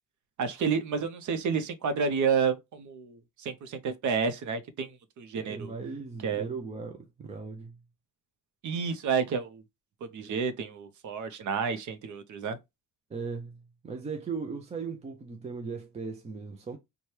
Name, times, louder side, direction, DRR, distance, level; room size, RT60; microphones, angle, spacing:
voice 1, 0.4-4.9 5.2-5.7 6.2-6.5 8.6-9.6 10.1-12.6, right 6 dB, 50° right, 0.6 m, -30 dB
voice 2, 5.4-7.8 13.1-16.8, right 5 dB, 20° right, 0.3 m, -38 dB
4.3 x 2.2 x 3.2 m
cardioid pair, 160°, 37 cm